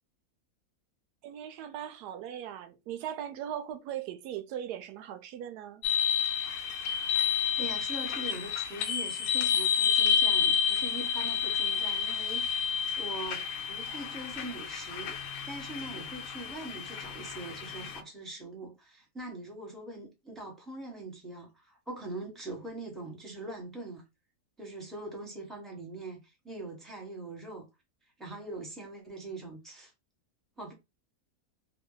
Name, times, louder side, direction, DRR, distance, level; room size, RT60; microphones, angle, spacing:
voice 1, 1.2-5.8, right 10 dB, 90° right, 1.1 m, -39 dB
sound 1, 5.8-18.0, left 7 dB, 70° left, 0.9 m, -30 dB
voice 2, 7.6-12.5 13.0-15.2 15.5-24.0 24.6-27.7 28.2-29.9 30.6-30.7, right 2 dB, ahead, 0.9 m, -42 dB
2.9 x 2.3 x 3.8 m
omnidirectional pair, 1.6 m